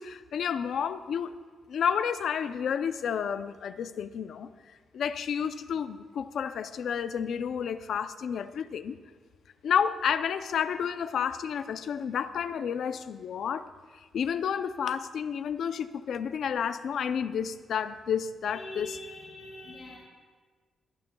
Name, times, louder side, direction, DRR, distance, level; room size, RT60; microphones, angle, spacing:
voice 1, 0.0-1.4 1.7-4.5 4.9-9.0 9.6-18.9, left 7 dB, 65° left, 11 dB, 0.5 m, -31 dB
voice 2, 18.5-20.0, left 2 dB, 50° left, -5 dB, 2.4 m, -42 dB
22.5 x 12.0 x 2.3 m, 1.5 s
wide cardioid pair, 165°, 0 cm